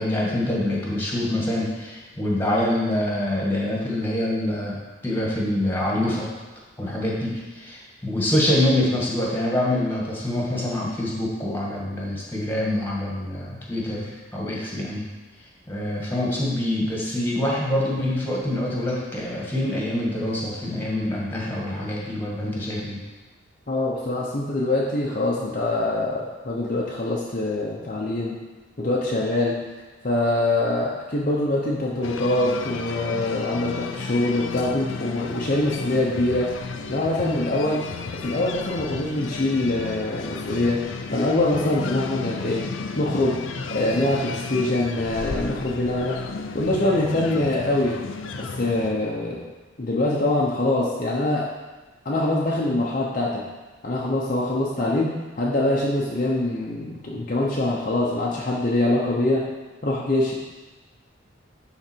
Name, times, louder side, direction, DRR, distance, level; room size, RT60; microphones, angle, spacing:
voice 1, 0.0-6.3 6.8-15.1 15.7-23.0, left 1 dB, 10° left, -4 dB, 1.8 m, -25 dB
voice 2, 23.7-28.4 28.8-29.6 30.0-36.5 36.9-37.8 38.1-40.8 41.1-42.7 42.9-43.4 43.7-46.3 46.5-48.0 48.3-49.4 49.8-51.5 52.0-53.4 53.8-59.5 59.8-60.3, left 2 dB, 40° left, -4 dB, 0.8 m, -24 dB
sound 1, 32.0-48.9, left 4 dB, 75° left, 0.6 m, -33 dB
11.0 x 4.0 x 4.5 m, 1.2 s
head